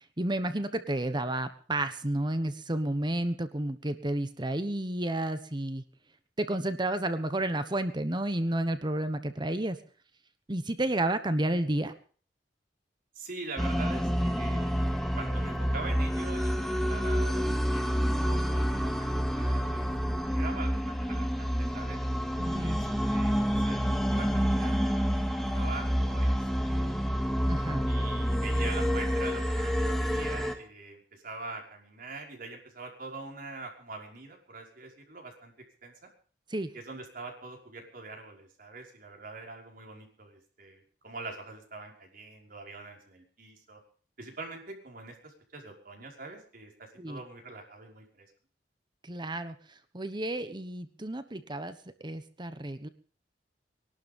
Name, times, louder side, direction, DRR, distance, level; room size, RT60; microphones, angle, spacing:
voice 1, 0.2-5.8 6.4-9.8 10.5-11.9 22.4-22.8 27.5-27.9 36.5-36.7 47.0-47.2 49.0-51.7 52.0-52.9, right 1 dB, 25° right, 10 dB, 1.2 m, -31 dB
voice 2, 13.1-18.0 18.2-18.9 19.4-22.0 22.6-22.8 23.0-26.9 27.9-35.5 35.8-35.9 36.7-43.8 44.2-48.3, right 3 dB, 55° right, 1 dB, 5.6 m, -44 dB
sound 1, 13.6-30.5, equal, ahead, 2.3 m, -28 dB
22.0 x 12.0 x 5.4 m, 0.44 s
head